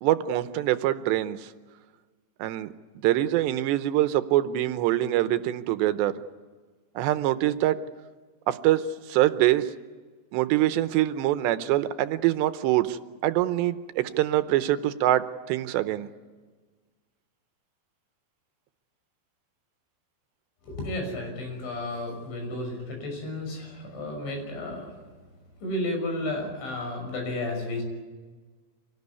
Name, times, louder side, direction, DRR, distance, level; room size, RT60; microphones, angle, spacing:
voice 1, 0.0-1.5 2.4-2.7 3.0-6.1 7.0-7.8 8.5-9.7 10.3-16.1, right 14 dB, 80° right, 11 dB, 3.0 m, -24 dB
voice 2, 20.6-24.9 25.6-27.8, left 1 dB, 90° left, 3 dB, 8.4 m, -32 dB
25.5 x 18.5 x 9.6 m, 1.4 s
omnidirectional pair, 5.1 m